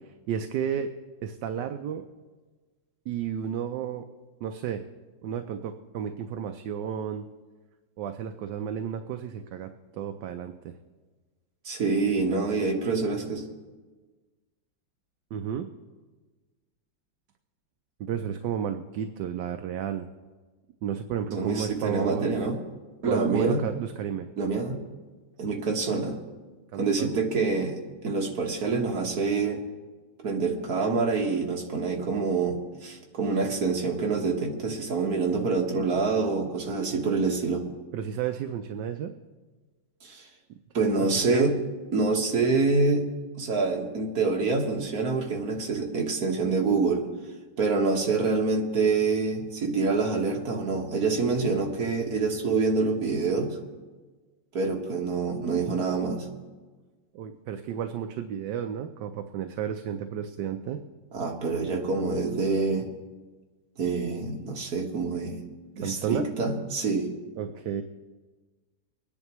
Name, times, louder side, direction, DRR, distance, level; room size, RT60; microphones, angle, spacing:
voice 1, 0.3-0.9 1.2-2.0 3.1-4.0 4.4-4.8 5.2-7.3 8.0-10.5 15.3-15.7 18.0-20.0 20.8-22.3 23.1-24.3 26.7-27.2 37.9-39.1 41.3-41.5 57.1-60.9 65.8-66.3 67.4-67.8, right 8 dB, 70° right, 7 dB, 1.2 m, -32 dB
voice 2, 11.7-13.4 21.3-22.6 23.0-23.6 24.4-24.8 25.4-26.2 26.8-29.6 30.2-37.6 40.0-40.2 40.7-41.6 41.9-43.0 43.4-47.1 47.6-53.5 54.5-56.3 61.1-62.9 63.8-65.4 65.8-67.1, right 4 dB, 55° right, 1 dB, 1.9 m, -26 dB
24.0 x 10.0 x 3.1 m, 1.3 s
omnidirectional pair, 2.1 m